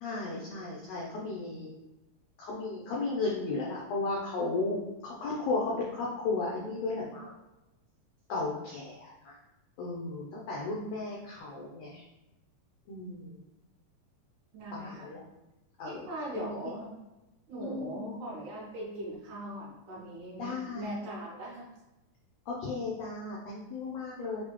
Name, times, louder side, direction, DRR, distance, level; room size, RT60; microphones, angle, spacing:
voice 1, 0.0-1.7 2.4-7.3 8.3-9.4 9.8-12.0 12.9-13.4 14.7-15.2 15.8-16.1 16.3-16.7 17.6-18.2 20.4-20.9 22.5-24.4, left 3 dB, 85° left, -3 dB, 1.5 m, -35 dB
voice 2, 14.5-15.0 15.9-16.9 17.5-21.7, right 1 dB, 75° right, -5 dB, 2.2 m, -40 dB
6.4 x 2.2 x 2.9 m, 1.0 s
omnidirectional pair, 3.9 m